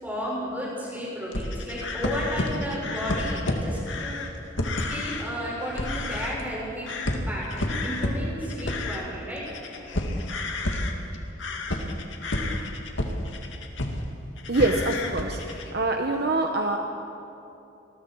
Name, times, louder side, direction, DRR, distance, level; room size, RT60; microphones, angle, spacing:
voice 1, 0.0-4.2 4.8-6.9 7.3-10.0, equal, 10° right, -5 dB, 6.2 m, -33 dB
sound 1, 1.3-5.3 5.6-6.6 6.9-14.1 14.4-15.8, left 1 dB, 75° left, 2.0 m, -30 dB
voice 2, 14.5-16.8, right 2 dB, 55° right, 4 dB, 1.1 m, -25 dB
27.0 x 20.5 x 4.7 m, 2.8 s
head